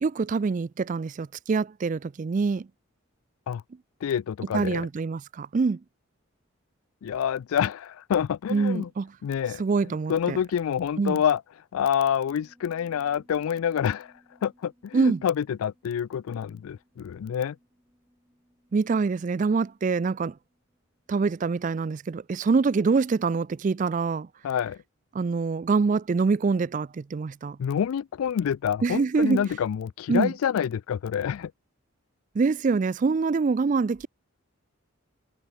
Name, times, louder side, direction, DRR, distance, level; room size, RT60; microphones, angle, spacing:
voice 1, 0.0-2.7 4.5-5.8 8.5-9.1 9.6-10.4 11.0-11.2 14.9-15.2 18.7-20.3 21.1-24.3 25.1-27.6 28.8-29.5 30.1-30.3 32.3-34.1, right 4 dB, 35° right, 0.3 m, -25 dB
voice 2, 4.0-4.9 7.0-8.9 9.2-11.4 11.7-14.1 14.4-17.6 24.4-24.8 27.6-31.5, left 8 dB, 80° left, 0.3 m, -27 dB
Piano, 12.2-23.0, equal, 10° right, 7.5 m, -64 dB
head